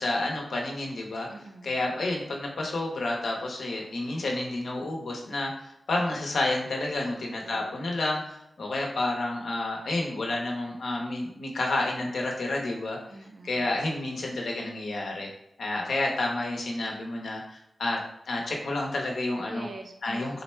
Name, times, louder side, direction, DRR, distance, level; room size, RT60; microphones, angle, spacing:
voice 1, 0.0-1.3 1.6-13.0 13.4-15.3 15.6-18.0 18.3-19.7 20.0-20.4, left 2 dB, 85° left, 0 dB, 0.8 m, -30 dB
voice 2, 1.3-1.8 6.9-7.8 13.1-13.7 19.5-20.4, right 2 dB, 50° right, 4 dB, 0.5 m, -44 dB
3.9 x 2.1 x 4.3 m, 0.80 s
wide cardioid pair, 95°, 0 cm